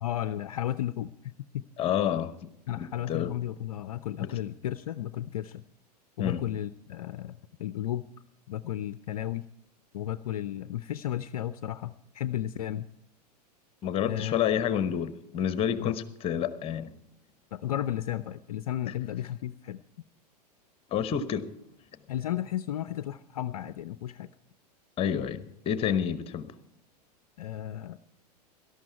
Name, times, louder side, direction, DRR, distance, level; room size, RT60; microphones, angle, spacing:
voice 1, 0.0-1.3 2.7-5.6 6.2-8.1 8.5-9.5 9.9-12.9 14.0-14.4 15.8-16.0 17.5-19.8 22.1-24.3 27.4-28.0, left 12 dB, 60° left, 0.6 m, -33 dB
voice 2, 1.8-2.3 2.8-3.3 4.2-4.3 6.2-6.4 13.8-16.9 20.9-21.5 25.0-26.5, left 9 dB, 25° left, 1.1 m, -29 dB
18.0 x 13.0 x 4.5 m
figure-of-eight pair, 90°, 21 cm